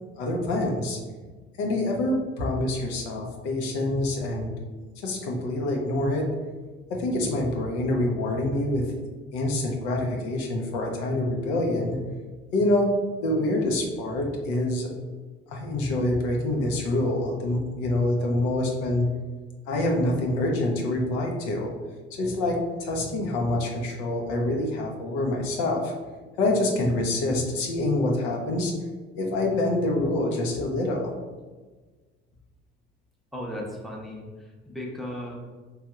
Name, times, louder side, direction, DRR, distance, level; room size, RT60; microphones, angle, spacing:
voice 1, 0.2-1.0 1.6-4.5 5.0-6.3 6.9-8.9 9.3-12.0 12.5-12.9 13.2-14.9 15.5-19.1 19.7-21.7 22.2-25.9 26.4-28.7 29.2-31.1, left 1 dB, 80° left, 0 dB, 0.6 m, -26 dB
voice 2, 33.3-35.4, left 1 dB, ahead, -2 dB, 0.7 m, -36 dB
3.1 x 2.7 x 2.3 m, 1.3 s
hypercardioid pair, 60°, 31 cm